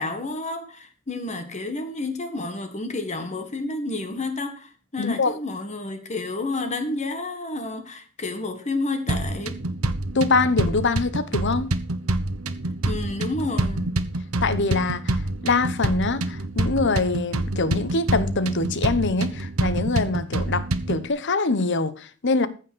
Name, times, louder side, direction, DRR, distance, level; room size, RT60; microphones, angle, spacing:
voice 1, 0.0-9.6 12.8-13.9, left 2 dB, 30° left, 1.6 m, -30 dB
voice 2, 5.0-5.4 10.1-11.7 14.4-22.5, left 3 dB, 55° left, 1.0 m, -24 dB
sound 1, 9.1-21.1, right 2 dB, 70° right, 1.2 m, -27 dB
15.0 x 6.0 x 6.3 m
head